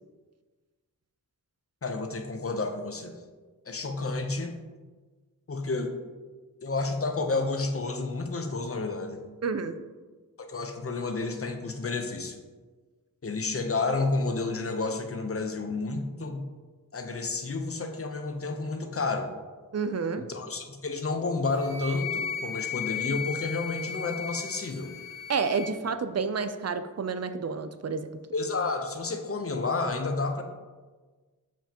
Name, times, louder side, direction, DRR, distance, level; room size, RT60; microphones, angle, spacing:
voice 1, 1.8-3.1 3.7-4.5 5.5-5.9 6.6-9.2 10.4-12.4 13.2-16.4 16.9-19.3 20.2-24.9 28.3-30.4, left 3 dB, 40° left, 5 dB, 0.7 m, -30 dB
voice 2, 9.4-9.8 19.7-20.2 25.3-28.1, right 5 dB, 45° right, 10 dB, 0.4 m, -30 dB
Wind instrument woodwind instrument, 21.5-25.7, left 7 dB, 10° right, 1.5 m, -35 dB
7.1 x 5.8 x 2.9 m, 1.3 s
wide cardioid pair, 95°, 35 cm